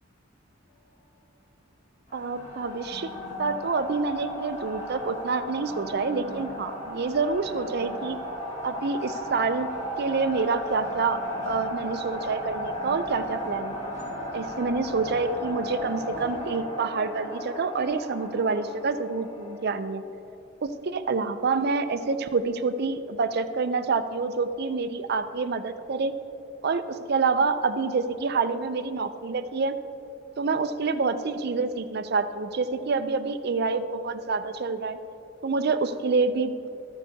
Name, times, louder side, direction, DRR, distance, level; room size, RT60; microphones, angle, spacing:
sound 1, 2.1-19.8, equal, 40° left, 2.2 m, -35 dB
voice 1, 2.1-3.1 3.4-8.2 8.6-9.7 10.0-11.2 11.5-13.8 14.3-20.0 20.6-26.1 26.6-29.8 30.4-35.0 35.4-36.7, right 4 dB, 55° right, 11 dB, 0.5 m, -27 dB
13.5 x 13.5 x 2.8 m, 2.8 s
head